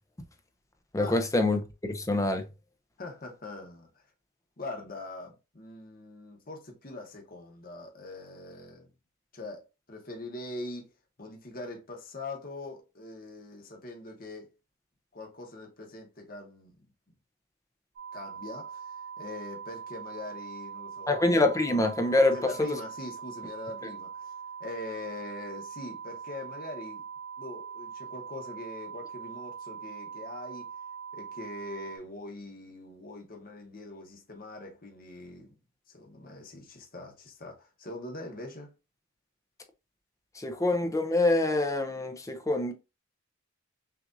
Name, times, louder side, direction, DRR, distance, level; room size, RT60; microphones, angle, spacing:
voice 1, 0.9-1.6 1.9-2.5 21.1-22.7 40.4-42.7, left 2 dB, 15° left, 0.6 m, -25 dB
voice 2, 3.0-4.0 4.6-8.9 9.3-9.6 9.9-10.9 11.2-14.5 15.1-16.8 18.1-21.1 22.3-24.3 24.6-27.0 27.4-30.7 31.1-35.6 35.9-38.7, left 2 dB, 45° left, 1.1 m, -42 dB
sound 1, 18.0-32.0, right 7 dB, 55° right, 1.7 m, -42 dB
5.9 x 2.6 x 2.6 m
head